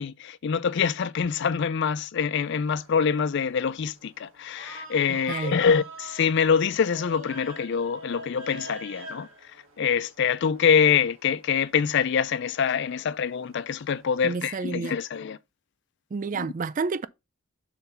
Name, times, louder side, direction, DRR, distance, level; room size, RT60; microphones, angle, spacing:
voice 1, 0.0-9.3 9.8-15.4 16.4-16.5, left 6 dB, 50° left, 0.4 m, -25 dB
sound 1, 2.4-14.3, right 2 dB, 60° right, 2.3 m, -46 dB
voice 2, 5.1-5.6 14.2-15.0 16.1-17.1, right 4 dB, 35° right, 0.3 m, -30 dB
6.8 x 3.9 x 5.5 m
head